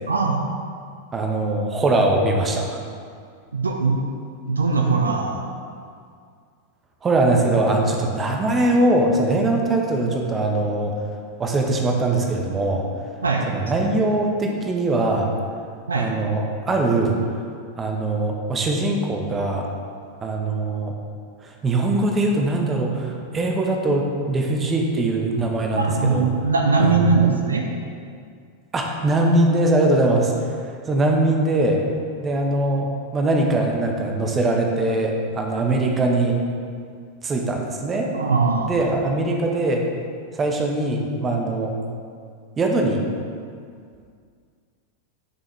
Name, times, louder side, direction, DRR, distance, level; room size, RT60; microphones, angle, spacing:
voice 1, 0.1-0.4 3.5-4.0 4.5-5.4 13.2-13.5 15.9-16.1 25.8-27.7 38.1-38.7, right 4 dB, 75° right, 2 dB, 0.8 m, -20 dB
voice 2, 1.1-2.8 7.0-10.9 11.4-12.8 13.5-15.3 16.0-17.2 17.8-19.6 20.2-20.9 21.4-25.8 26.1-26.3 26.8-27.3 28.7-30.3 30.9-31.8 32.2-36.4 37.2-38.1 38.7-39.8 40.3-41.7 42.6-43.0, right 2 dB, 20° right, 1 dB, 1.2 m, -21 dB
11.0 x 6.2 x 3.4 m, 2.2 s
figure-of-eight pair, 90°, 0 cm